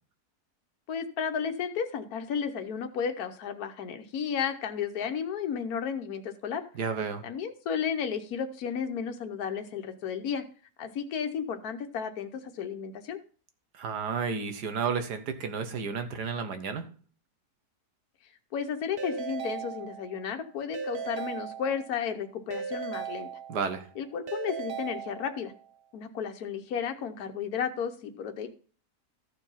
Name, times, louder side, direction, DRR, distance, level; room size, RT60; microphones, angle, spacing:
voice 1, 0.9-6.6 7.2-10.4 10.8-13.2 18.5-23.3 24.0-25.5 25.9-28.5, left 7 dB, 70° left, 6 dB, 1.4 m, -33 dB
voice 2, 6.7-7.2 13.7-16.9 23.5-23.9, right 5 dB, 85° right, 8 dB, 1.7 m, -32 dB
Keyboard (musical) / Ringtone, 19.0-20.3 20.7-22.1 22.5-23.9 24.3-25.6, right 7 dB, 45° right, 1.0 m, -37 dB
13.5 x 4.6 x 5.7 m, 0.41 s
omnidirectional pair, 1.7 m